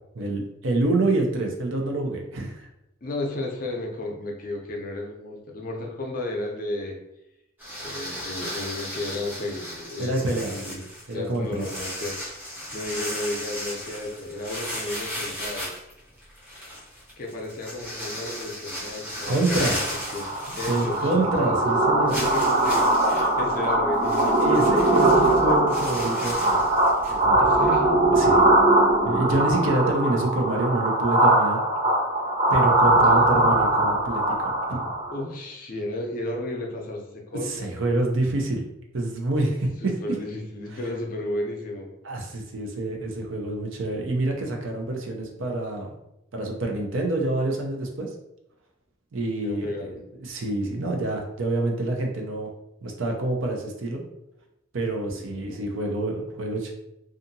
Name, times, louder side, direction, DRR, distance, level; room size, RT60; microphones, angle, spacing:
voice 1, 0.2-2.7 10.0-10.8 11.1-11.7 19.3-19.8 20.5-22.2 24.4-26.6 27.1-27.5 28.1-28.4 29.0-31.6 32.5-34.9 37.4-38.7 38.9-39.7 42.0-45.9 46.3-48.1 49.1-49.9 50.2-52.5 52.8-54.0 54.7-56.7, right 2 dB, 70° right, 1 dB, 0.5 m, -27 dB
voice 2, 3.0-7.0 7.8-10.8 11.1-12.1 12.4-15.7 17.2-19.7 20.1-20.3 20.5-21.6 22.2-24.4 27.4-27.8 35.1-37.7 39.8-41.9 49.4-50.0 55.2-55.6, left 1 dB, 40° left, 0 dB, 0.5 m, -33 dB
sound 1, 7.6-21.4 21.7-21.8 22.1-27.2, equal, 10° right, 0.6 m, -35 dB
sound 2, 19.8-35.2, right 1 dB, 40° right, 0.9 m, -21 dB
2.7 x 2.4 x 2.6 m, 0.85 s
head